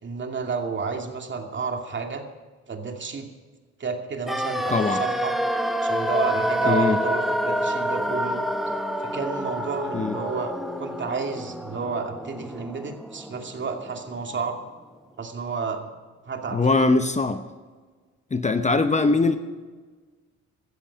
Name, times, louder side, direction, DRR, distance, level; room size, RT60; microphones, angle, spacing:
voice 1, 0.0-2.2 2.7-3.3 3.8-5.3 5.8-8.4 9.0-10.5 10.8-14.6 15.2-15.8 16.3-16.9, right 5 dB, 40° right, 4 dB, 2.5 m, -31 dB
sound 1, 4.3-14.2 14.5-14.6, equal, ahead, 1.1 m, -28 dB
voice 2, 4.7-5.0 6.7-7.0 9.9-10.2 16.5-17.4 18.3-19.4, left 3 dB, 25° left, 9 dB, 0.9 m, -21 dB
16.0 x 13.5 x 5.2 m, 1.4 s
cardioid pair, 90°, 30 cm